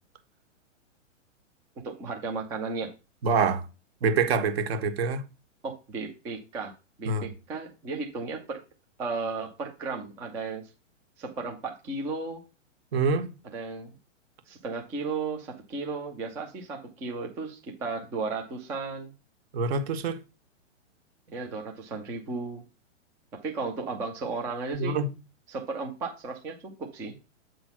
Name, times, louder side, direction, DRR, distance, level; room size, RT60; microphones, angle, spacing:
voice 1, 1.8-2.9 5.6-6.7 7.0-8.6 9.0-10.6 11.2-12.4 13.5-13.9 14.5-19.1 21.3-22.6 23.4-25.0 25.5-27.2, right 4 dB, 5° right, 0.3 m, -34 dB
voice 2, 3.2-3.6 4.0-5.2 7.1-7.3 12.9-13.3 19.5-20.2 24.7-25.0, right 4 dB, 50° right, 1.6 m, -25 dB
7.8 x 3.9 x 5.8 m
hypercardioid pair, 130°, 38 cm